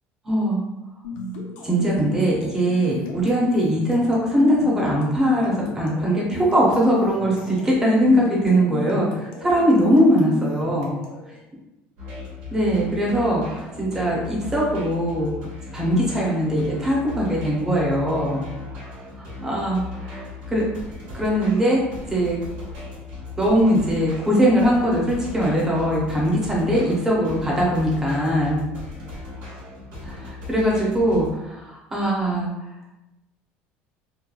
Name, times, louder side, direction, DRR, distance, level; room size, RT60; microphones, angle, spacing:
voice 1, 0.2-0.6 1.6-10.9 12.5-15.3 15.7-18.4 19.2-20.6 21.1-21.8 22.1-22.4 23.4-28.6 30.0-32.5, equal, 10° right, -4 dB, 0.6 m, -21 dB
sound 1, 1.0-11.3, left 5 dB, 85° left, 0.5 m, -34 dB
sound 2, 12.0-31.3, left 3 dB, 75° right, 1.2 m, -37 dB
2.8 x 2.2 x 2.2 m, 0.95 s
cardioid pair, 180°, 5 cm